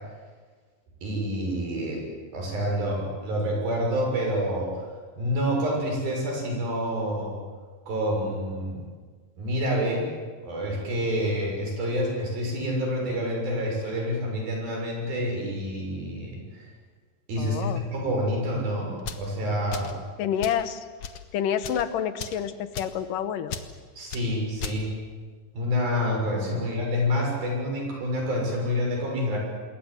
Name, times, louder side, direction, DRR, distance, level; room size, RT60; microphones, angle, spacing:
voice 1, 1.0-2.0 2.3-4.8 5.2-7.3 7.9-8.8 9.4-10.1 10.4-16.7 17.3-19.9 24.0-24.9 25.5-29.4, equal, 75° right, 0 dB, 8.4 m, -28 dB
voice 2, 17.4-17.8 20.2-20.8 21.3-23.6 26.5-26.7, left 9 dB, 70° left, 11 dB, 2.5 m, -28 dB
sound 1, 19.0-19.3 19.7-20.0 20.4-20.6 21.0-21.2 21.6-21.9 22.2-22.4 22.7-23.0 23.5-23.7 24.1-24.3 24.6-24.8, left 6 dB, 55° left, 1.8 m, -36 dB
27.5 x 21.5 x 8.0 m, 1.5 s
omnidirectional pair, 4.2 m